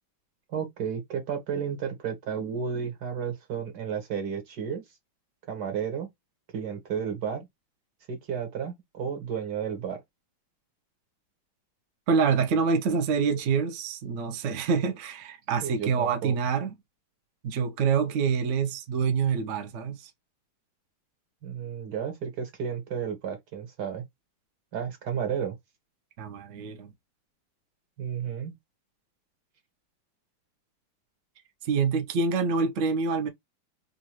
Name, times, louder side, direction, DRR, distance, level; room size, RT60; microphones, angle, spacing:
voice 1, 0.5-4.8 5.5-6.1 6.5-7.5 8.1-10.0 15.6-16.3 21.4-24.0 24.7-25.6 28.0-28.5, right 7 dB, 55° right, 1.7 m, -32 dB
voice 2, 12.1-16.7 17.4-20.1 26.2-26.9 31.6-33.3, right 5 dB, 75° right, 0.6 m, -26 dB
3.9 x 2.6 x 3.0 m
omnidirectional pair, 2.2 m